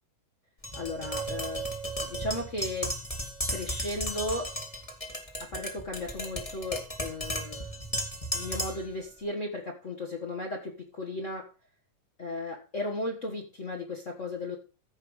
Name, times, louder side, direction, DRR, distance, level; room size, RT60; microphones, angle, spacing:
Tap, 0.6-8.9, equal, 15° left, 1.3 m, -35 dB
voice 1, 0.7-1.7 2.0-3.0 3.5-4.5 5.4-7.6 8.3-11.5 12.2-14.6, left 2 dB, 60° left, -1 dB, 0.7 m, -35 dB
15.5 x 5.3 x 4.8 m, 0.35 s
omnidirectional pair, 3.9 m